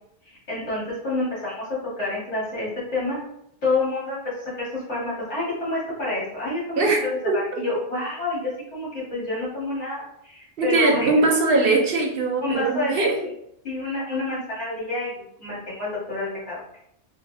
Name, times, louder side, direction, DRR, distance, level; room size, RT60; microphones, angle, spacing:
voice 1, 0.3-1.7 2.0-3.2 3.6-11.1 12.4-13.1 13.6-16.8, left 2 dB, 70° left, -8 dB, 1.9 m, -28 dB
voice 2, 7.2-7.6 10.6-13.3, right 3 dB, 60° right, 1 dB, 0.7 m, -21 dB
3.9 x 2.4 x 2.6 m, 0.76 s
omnidirectional pair, 1.2 m